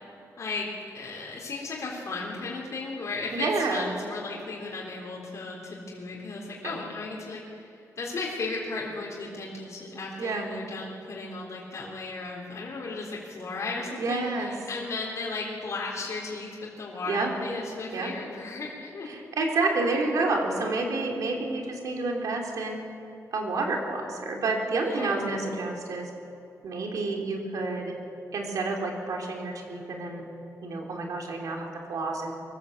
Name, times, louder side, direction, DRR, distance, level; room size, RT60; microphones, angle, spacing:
voice 1, 0.4-0.7 0.9-7.7 8.0-19.1 24.8-25.5, left 3 dB, 50° left, -3 dB, 3.8 m, -35 dB
voice 2, 3.3-3.9 6.6-6.8 10.2-10.5 14.0-14.5 17.1-17.3 17.9-18.1 19.1-22.8 23.3-26.1 26.6-27.9 28.3-30.2 30.6-32.3, right 3 dB, 70° right, 1 dB, 3.4 m, -29 dB
24.0 x 14.0 x 8.0 m, 2.8 s
wide cardioid pair, 160°, 6 cm